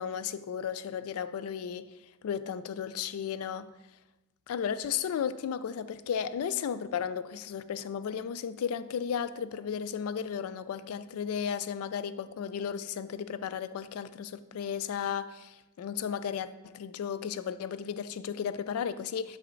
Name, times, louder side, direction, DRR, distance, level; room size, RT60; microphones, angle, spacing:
voice 1, 0.0-1.9 2.2-3.7 4.5-19.4, left 7 dB, 85° left, 0.3 m, -34 dB
6.6 x 5.0 x 3.1 m
head